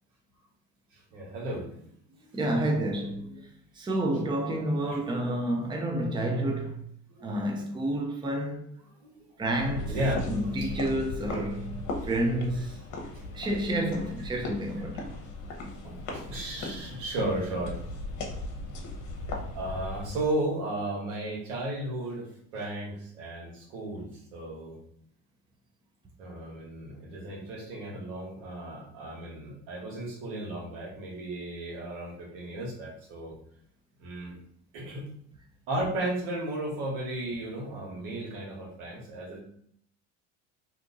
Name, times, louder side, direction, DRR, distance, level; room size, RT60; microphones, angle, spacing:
voice 1, 0.9-1.8 2.3-2.4 3.0-3.5 4.8-5.0 7.1-7.6 8.8-9.2 9.6-10.6 10.9-11.0 15.8-17.8 19.3-24.8 26.2-33.3 34.0-34.3 34.7-35.1 35.7-39.4, right 1 dB, 85° right, 1.3 m, -35 dB
voice 2, 2.3-3.3 3.8-6.8 7.2-8.7 9.4-9.9 10.3-12.7 13.3-15.0, right 1 dB, 15° right, 0.6 m, -29 dB
sound 1, 9.4-20.3, left 2 dB, 55° left, 1.0 m, -38 dB
2.8 x 2.5 x 3.8 m
supercardioid pair, 90°, 35 cm